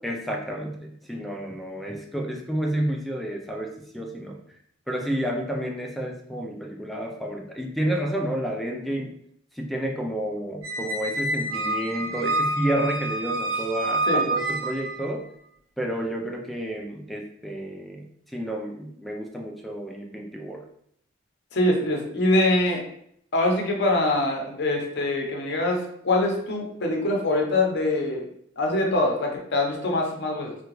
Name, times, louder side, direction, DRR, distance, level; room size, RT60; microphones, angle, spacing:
voice 1, 0.0-0.8 1.1-4.4 4.9-9.2 9.6-15.3 15.8-18.0 18.3-20.6, right 1 dB, ahead, 1 dB, 0.3 m, -30 dB
Squeak, 10.6-15.1, right 2 dB, 85° right, 0.6 m, -27 dB
voice 2, 21.5-22.8 23.3-28.3 28.6-30.5, left 2 dB, 60° left, 1 dB, 0.7 m, -24 dB
3.6 x 2.2 x 3.0 m, 0.69 s
head